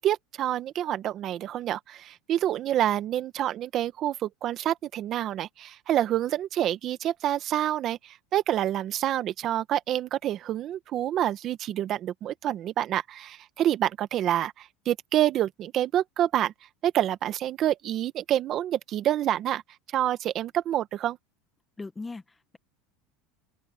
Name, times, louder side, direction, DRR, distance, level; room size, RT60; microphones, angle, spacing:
voice 1, 0.0-16.5 16.8-19.6 19.9-21.2, right 12 dB, 40° right, 1.4 m, -27 dB
voice 2, 21.8-22.6, left 3 dB, 10° left, 1.6 m, -39 dB
open air
supercardioid pair, 120°, 0 cm